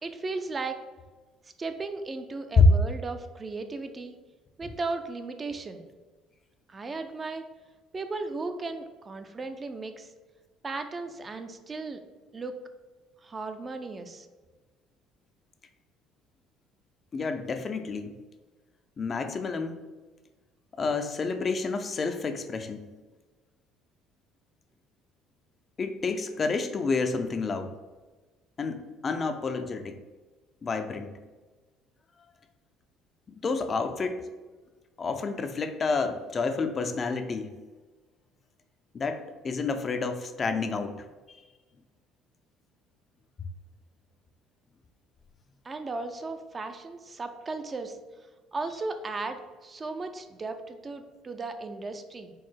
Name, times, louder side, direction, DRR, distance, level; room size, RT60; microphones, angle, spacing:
voice 1, 0.0-0.8 1.6-4.2 4.6-5.9 6.7-7.4 7.9-10.1 10.6-12.0 12.3-12.6 13.2-14.3 45.6-48.0 48.5-52.3, right 3 dB, 30° right, 8 dB, 0.4 m, -36 dB
voice 2, 17.1-18.1 19.0-19.8 20.8-22.8 25.8-27.7 28.6-30.0 30.6-31.1 33.3-34.2 35.0-37.5 38.9-41.0 41.3-41.4, left 5 dB, 35° left, 8 dB, 0.4 m, -29 dB
4.6 x 2.0 x 4.4 m, 1.3 s
supercardioid pair, 85°, 0 cm